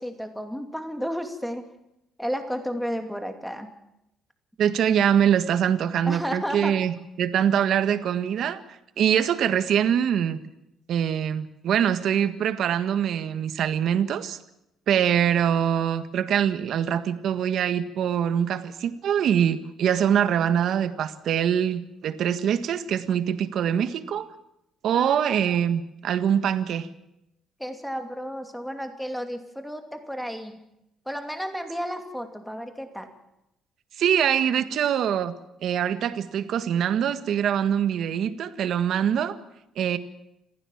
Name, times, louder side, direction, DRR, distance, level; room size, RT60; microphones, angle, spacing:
voice 1, 0.0-1.6 2.2-3.7 6.1-6.7 24.9-25.6 27.6-30.6 31.1-33.1 34.7-34.8, equal, ahead, 6 dB, 2.6 m, -32 dB
voice 2, 4.6-6.9 7.2-8.6 9.0-10.4 10.9-14.4 14.9-24.3 24.8-26.9 34.0-35.3 35.6-39.4 39.8-40.0, right 9 dB, 60° right, 10 dB, 1.6 m, -23 dB
27.0 x 15.5 x 7.3 m, 0.84 s
cardioid pair, 140°, 0 cm